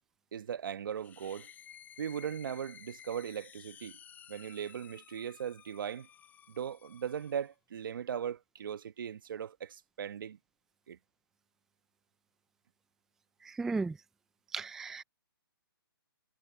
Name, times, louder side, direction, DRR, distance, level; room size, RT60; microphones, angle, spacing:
voice 1, 0.3-1.5 2.0-4.0 4.3-6.1 6.5-10.4 10.9-11.0, right 8 dB, 65° right, 1.3 m, -38 dB
sound 1, 1.0-7.5, left 9 dB, 15° left, 5.3 m, -55 dB
voice 2, 13.5-13.9 14.5-15.0, right 4 dB, 5° right, 0.3 m, -35 dB
hypercardioid pair, 150°, 12 cm